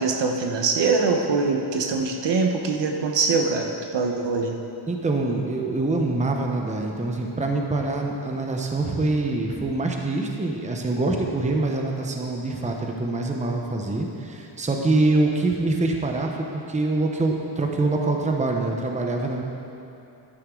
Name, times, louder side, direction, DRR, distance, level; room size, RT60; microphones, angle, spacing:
voice 1, 0.0-4.6, right 4 dB, 65° right, 3 dB, 1.1 m, -23 dB
voice 2, 4.9-19.4, right 2 dB, 15° right, 1 dB, 0.9 m, -25 dB
11.5 x 11.0 x 3.8 m, 2.9 s
wide cardioid pair, 135°, 46 cm